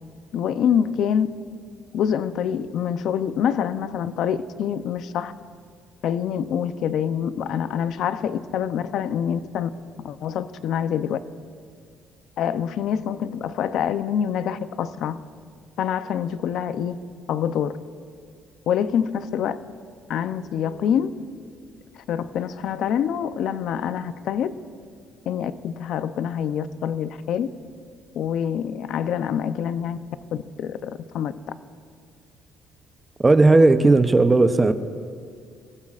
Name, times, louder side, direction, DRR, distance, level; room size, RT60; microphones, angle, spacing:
voice 1, 0.3-1.3 1.9-5.3 6.0-9.7 10.0-11.2 12.4-15.2 15.8-17.0 17.3-17.7 18.7-19.6 20.1-21.1 22.1-24.5 25.3-27.5 28.1-30.0 30.3-31.3, left 8 dB, 65° left, 12 dB, 0.6 m, -25 dB
voice 2, 33.2-34.7, right 2 dB, 15° right, 10 dB, 0.7 m, -15 dB
25.0 x 16.0 x 2.5 m, 2.2 s
cardioid pair, 140°, 0 cm